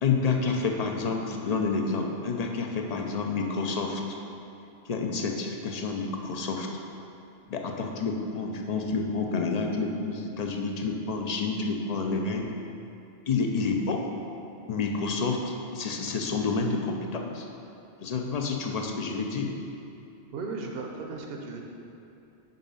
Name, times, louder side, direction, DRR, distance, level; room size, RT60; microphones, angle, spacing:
voice 1, 0.0-4.0 4.9-6.7 7.5-12.5 13.3-14.0 14.7-17.5 18.0-19.5, left 4 dB, 45° left, 2 dB, 0.6 m, -29 dB
voice 2, 20.3-21.6, right 3 dB, 65° right, 1 dB, 0.9 m, -36 dB
5.4 x 5.0 x 5.5 m, 2.8 s
omnidirectional pair, 1.1 m